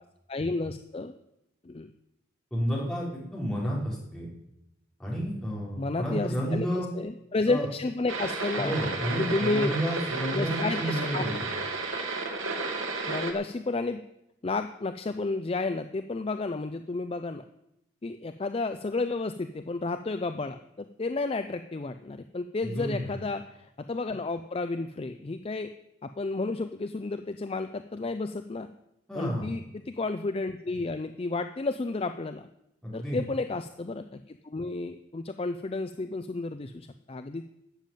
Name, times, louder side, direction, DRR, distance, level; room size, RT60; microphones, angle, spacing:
voice 1, 0.3-1.1 1.6-1.9 5.8-8.7 9.2-9.7 10.4-11.3 13.1-14.0 14.4-17.4 18.0-25.7 26.0-28.7 29.2-32.5 32.9-37.4, left 3 dB, 30° left, 9 dB, 0.4 m, -32 dB
voice 2, 2.5-4.3 5.0-6.9 7.5-7.7 8.6-11.4 22.6-23.1 29.1-29.5 32.8-33.2, equal, 5° left, -6 dB, 4.5 m, -31 dB
sound 1, 8.1-13.3, right 3 dB, 90° right, 2.3 m, -32 dB
12.5 x 7.3 x 9.1 m, 0.87 s
head